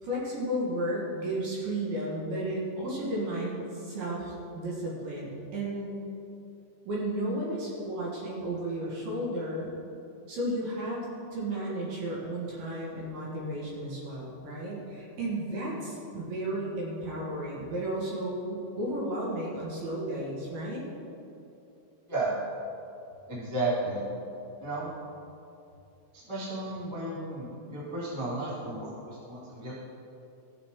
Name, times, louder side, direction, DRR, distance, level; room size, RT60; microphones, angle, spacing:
voice 1, 0.0-5.9 6.9-9.7 10.3-20.8, right 1 dB, 60° right, -5 dB, 2.9 m, -33 dB
voice 2, 23.3-24.0 24.6-24.9 26.1-29.7, right 2 dB, 15° right, -8 dB, 0.9 m, -33 dB
16.0 x 7.1 x 3.7 m, 2.8 s
omnidirectional pair, 5.6 m